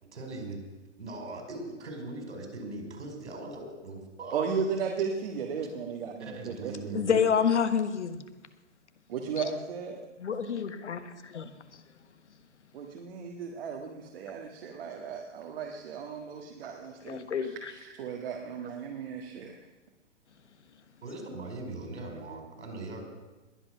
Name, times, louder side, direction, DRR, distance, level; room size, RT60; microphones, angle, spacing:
voice 1, 0.1-0.6 1.0-4.4 6.2-7.1 18.4-18.5 21.0-23.1, right 2 dB, 65° right, 3 dB, 5.1 m, -40 dB
voice 2, 4.3-7.3 9.1-10.0 12.7-17.2 17.7-19.6, right 6 dB, 50° right, 1 dB, 1.7 m, -35 dB
voice 3, 6.9-8.2 9.4-9.5 10.2-11.8 17.0-17.7, left 7 dB, 70° left, 10 dB, 1.4 m, -29 dB
21.0 x 8.7 x 6.1 m, 1.1 s
figure-of-eight pair, 120°, 36 cm